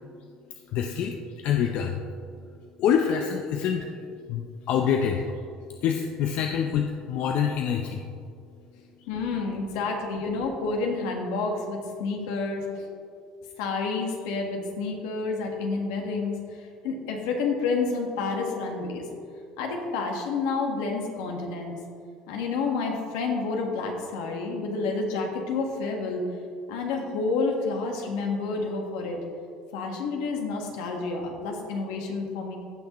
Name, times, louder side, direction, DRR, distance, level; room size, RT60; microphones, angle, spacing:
voice 1, 0.7-2.0 2.8-3.9 4.3-5.2 5.8-8.0, left 8 dB, 65° left, 3 dB, 0.6 m, -26 dB
voice 2, 9.1-12.9 13.6-16.4 16.8-19.1 19.6-21.8 22.3-26.2 26.7-29.2 29.7-32.6, left 4 dB, 85° left, 1 dB, 1.5 m, -29 dB
16.0 x 5.8 x 3.1 m, 2.3 s
supercardioid pair, 95°, 2 cm